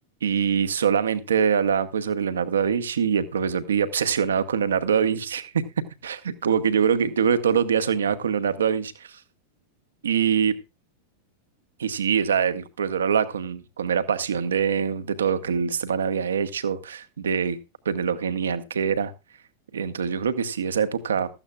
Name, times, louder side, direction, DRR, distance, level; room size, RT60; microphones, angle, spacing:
voice 1, 0.2-5.6 6.0-9.2 10.0-10.6 11.8-17.6 17.8-19.1 19.7-21.3, right 7 dB, 65° right, 11 dB, 1.2 m, -24 dB
16.0 x 13.5 x 2.4 m, 0.27 s
figure-of-eight pair, 90°, 0 cm